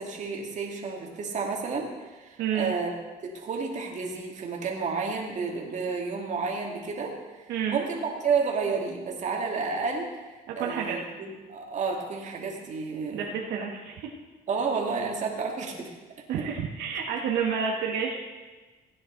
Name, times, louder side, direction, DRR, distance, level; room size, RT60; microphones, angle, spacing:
voice 1, 0.0-2.9 3.2-10.1 10.6-13.3 14.5-15.9, right 5 dB, 45° right, 0 dB, 2.3 m, -31 dB
voice 2, 2.4-2.7 7.5-7.8 10.5-11.0 13.1-14.1 16.3-18.2, right 7 dB, 85° right, -1 dB, 1.5 m, -29 dB
16.5 x 9.7 x 3.9 m, 1.2 s
cardioid pair, 110°, 17 cm